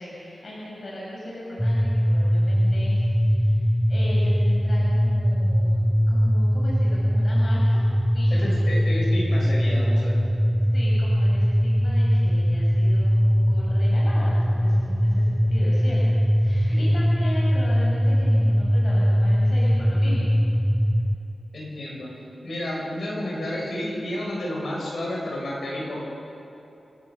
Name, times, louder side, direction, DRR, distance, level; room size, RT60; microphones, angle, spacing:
voice 1, 0.0-7.8 8.1-8.5 10.4-20.3, left 1 dB, 55° left, -6 dB, 5.6 m, -37 dB
sound 1, 1.6-21.1, equal, ahead, 0.5 m, -21 dB
voice 2, 8.3-10.2 16.7-16.9 21.5-22.1 22.4-26.0, left 1 dB, 70° left, -3 dB, 6.5 m, -31 dB
27.5 x 14.0 x 6.8 m, 2.9 s
wide cardioid pair, 135°, 0 cm